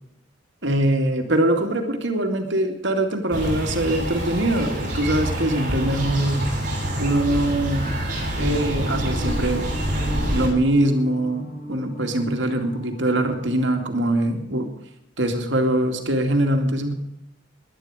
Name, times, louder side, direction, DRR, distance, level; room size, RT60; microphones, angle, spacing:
voice 1, 0.6-6.5 7.0-7.9 8.4-9.6 10.3-14.7 15.2-16.9, right 1 dB, 80° right, 5 dB, 2.5 m, -22 dB
sound 1, 3.3-10.5, right 1 dB, 45° right, 7.2 m, -26 dB
sound 2, 8.3-14.6, equal, 45° left, 5.1 m, -35 dB
18.5 x 11.5 x 5.0 m, 0.82 s
head